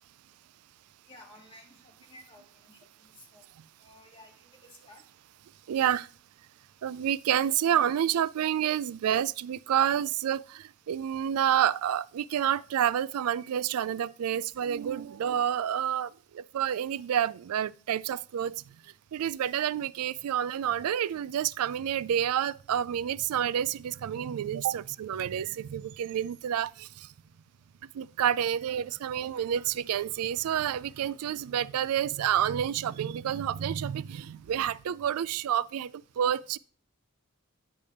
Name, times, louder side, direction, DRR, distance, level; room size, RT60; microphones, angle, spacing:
voice 1, 1.1-3.5 3.8-5.0, left 1 dB, 25° left, 1.6 m, -54 dB
voice 2, 5.7-6.1 6.8-27.1 27.9-36.6, right 9 dB, 85° right, 0.3 m, -29 dB
10.0 x 3.4 x 7.0 m
head